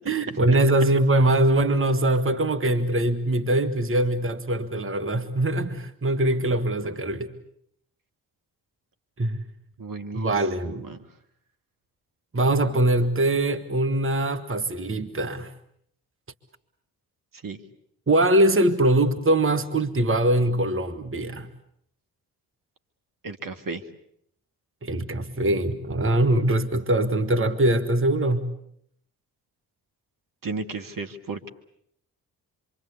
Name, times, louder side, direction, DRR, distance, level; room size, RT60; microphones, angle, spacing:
voice 1, 0.1-7.3 9.2-9.4 10.1-10.8 12.3-15.5 18.1-21.5 24.8-28.5, right 1 dB, 30° right, 2.0 m, -22 dB
voice 2, 9.8-10.3 10.6-11.0 17.4-17.6 23.2-23.8 30.4-31.5, right 3 dB, 50° right, 2.2 m, -34 dB
26.5 x 24.5 x 8.3 m
hypercardioid pair, 40°, 43 cm